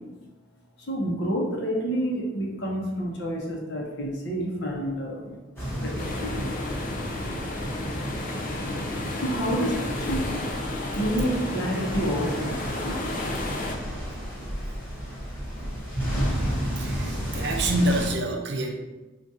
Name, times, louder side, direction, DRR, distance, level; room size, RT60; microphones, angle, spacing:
voice 1, 0.8-5.4 5.8-5.9 6.2-6.5 9.1-10.3 10.9-13.5, equal, 60° left, -1 dB, 0.8 m, -29 dB
sound 1, 5.6-18.1, equal, 10° left, 1.2 m, -32 dB
sound 2, 6.0-13.7, left 2 dB, 40° left, 0.4 m, -33 dB
voice 2, 16.7-18.7, right 1 dB, 60° right, 2 dB, 0.5 m, -27 dB
4.7 x 2.4 x 2.7 m, 1.1 s
head